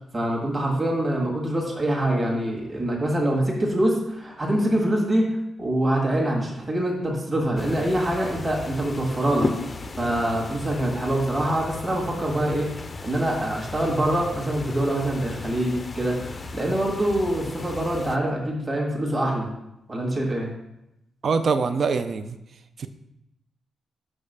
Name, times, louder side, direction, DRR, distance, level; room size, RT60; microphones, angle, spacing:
voice 1, 0.1-5.3 5.6-9.5 10.0-12.7 13.0-19.5 19.9-20.5, right 1 dB, 25° right, -2 dB, 1.7 m, -24 dB
sound 1, 7.5-18.2, left 3 dB, 30° left, 0.5 m, -36 dB
voice 2, 21.2-22.4 22.8-22.9, right 5 dB, 50° right, 10 dB, 0.5 m, -23 dB
5.6 x 5.3 x 6.7 m, 0.88 s
wide cardioid pair, 140°, 0 cm